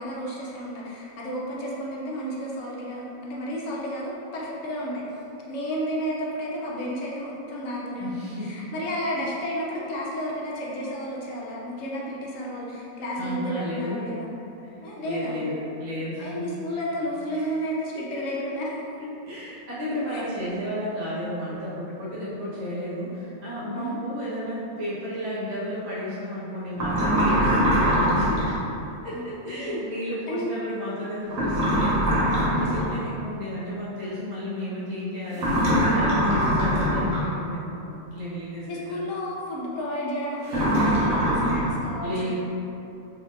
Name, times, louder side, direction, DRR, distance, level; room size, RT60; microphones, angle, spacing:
voice 1, 0.0-14.3 14.8-15.4 16.2-18.8 20.1-20.3 23.7-24.0 29.1-29.8 30.3-30.5 32.4-32.7 38.7-42.4, equal, 70° left, -4 dB, 1.0 m, -32 dB
voice 2, 8.0-8.7 9.1-9.2 13.2-14.0 14.6-16.4 17.3-17.5 19.0-28.4 29.0-39.0 42.0-42.4, equal, 35° right, -11 dB, 0.8 m, -33 dB
sound 1, 26.7-28.6 31.3-33.0 35.3-37.3 40.5-41.7, equal, 85° right, 1.3 m, -22 dB
3.7 x 3.2 x 2.5 m, 2.8 s
omnidirectional pair, 1.4 m